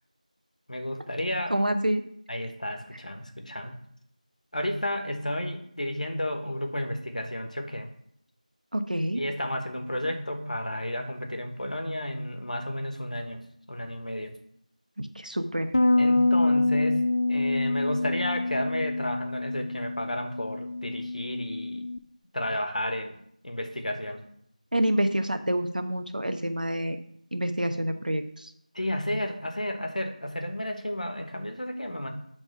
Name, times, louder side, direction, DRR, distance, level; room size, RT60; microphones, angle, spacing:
voice 1, 0.7-1.5 2.3-3.8 4.5-7.9 9.2-13.4 13.7-14.3 16.0-17.0 17.3-21.8 22.3-24.2 28.7-32.1, left 1 dB, 65° left, 5 dB, 1.2 m, -32 dB
voice 2, 1.5-2.0 8.7-9.2 15.0-15.8 24.7-27.0 27.3-28.5, right 1 dB, 80° right, 7 dB, 1.0 m, -27 dB
Bass guitar, 15.7-22.0, left 2 dB, 40° left, 0.4 m, -26 dB
8.3 x 3.6 x 5.6 m, 0.69 s
figure-of-eight pair, 175°, 4 cm